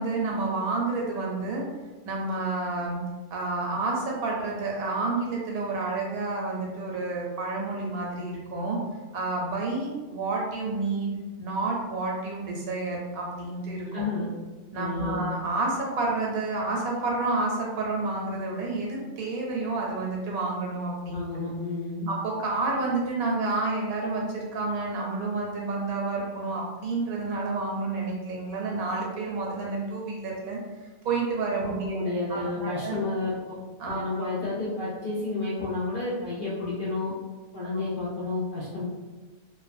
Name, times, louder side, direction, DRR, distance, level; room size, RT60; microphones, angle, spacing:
voice 1, 0.0-1.6 2.0-3.0 3.3-8.8 9.1-11.1 11.4-13.9 14.7-21.2 22.1-30.6 31.0-32.0 32.3-32.9 33.8-34.3 37.6-37.7, right 3 dB, 75° right, -2 dB, 1.0 m, -29 dB
voice 2, 13.9-14.3 14.7-15.2 21.1-22.1 31.6-33.6 33.9-37.1 37.5-38.8, left 3 dB, 60° left, -9 dB, 0.5 m, -31 dB
2.5 x 2.2 x 2.5 m, 1.2 s
omnidirectional pair, 1.6 m